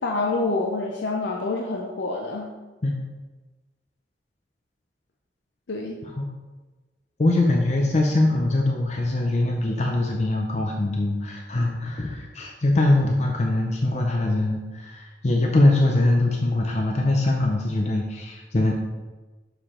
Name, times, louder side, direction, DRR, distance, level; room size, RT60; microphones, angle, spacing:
voice 1, 0.0-2.5 5.7-6.0, left 3 dB, 80° left, 1 dB, 0.6 m, -27 dB
voice 2, 7.2-18.7, left 2 dB, 40° left, 1 dB, 0.6 m, -22 dB
6.7 x 4.7 x 3.7 m, 1.2 s
head